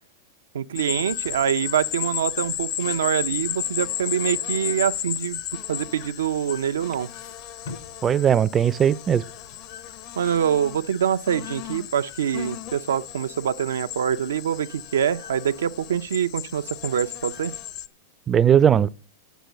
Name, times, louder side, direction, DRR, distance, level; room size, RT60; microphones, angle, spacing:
voice 1, 0.5-5.4 5.7-7.1 10.2-17.5, right 9 dB, 85° right, 0.6 m, -25 dB
sound 1, 0.8-17.9, left 11 dB, 50° left, 0.8 m, -34 dB
sound 2, 3.7-6.4 6.7-8.0 9.0-10.9, left 3 dB, 80° left, 6.6 m, -48 dB
voice 2, 8.0-9.2 18.3-18.9, right 9 dB, 25° right, 0.4 m, -18 dB
9.1 x 6.5 x 8.2 m
hypercardioid pair, 120°, 0 cm